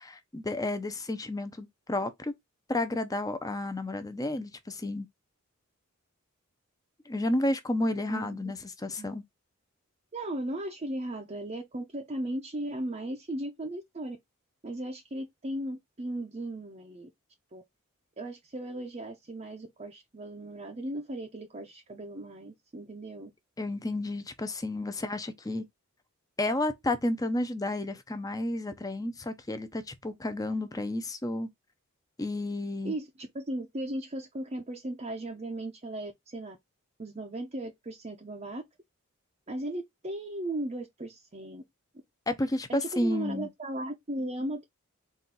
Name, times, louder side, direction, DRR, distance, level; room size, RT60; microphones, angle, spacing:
voice 1, 0.0-2.3 2.7-5.1 7.1-9.2 23.6-25.6 26.4-31.5 32.2-32.9 42.3-43.5, left 1 dB, 15° left, 0.6 m, -31 dB
voice 2, 8.1-8.5 9.0-9.2 10.1-14.2 14.6-17.1 17.5-17.6 18.2-23.3 32.8-36.6 37.0-38.6 39.5-41.6 42.7-44.6, right 1 dB, 30° right, 0.6 m, -37 dB
4.2 x 2.6 x 3.8 m
head